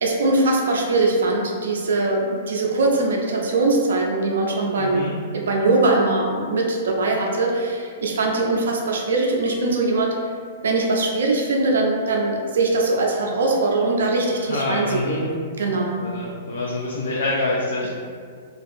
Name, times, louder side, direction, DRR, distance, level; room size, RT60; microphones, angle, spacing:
voice 1, 0.0-5.1 5.3-10.2 10.6-16.0 17.8-17.9, right 2 dB, 80° right, 0 dB, 0.4 m, -21 dB
voice 2, 4.8-5.1 14.5-15.2 16.0-17.9, left 2 dB, 80° left, -3 dB, 0.3 m, -26 dB
2.5 x 2.3 x 2.5 m, 2.1 s
hypercardioid pair, 135°, 0 cm